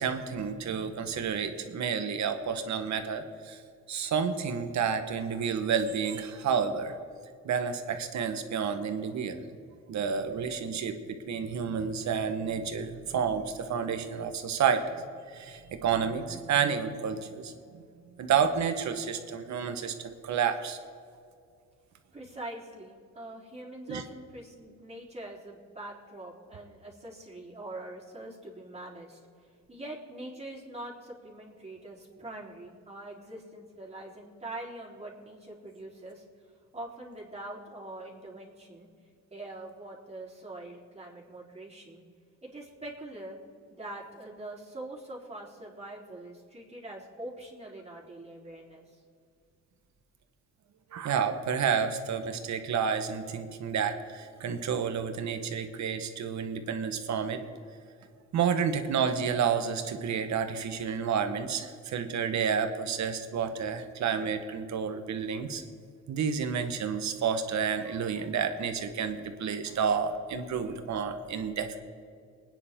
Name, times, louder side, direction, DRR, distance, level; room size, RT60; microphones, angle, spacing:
voice 1, 0.0-3.6 3.9-6.9 7.4-9.4 9.9-11.0 11.3-14.8 15.3-17.5 18.2-20.8 23.9-24.0 50.9-57.4 58.3-65.6 66.1-71.8, right 7 dB, 65° right, 7 dB, 1.5 m, -30 dB
voice 2, 22.1-36.2 36.7-38.9 39.3-42.0 42.4-43.4 43.7-49.0 69.7-69.8, right 1 dB, 20° right, -3 dB, 3.9 m, -43 dB
24.5 x 9.8 x 3.8 m, 2.3 s
cardioid pair, 90°, 30 cm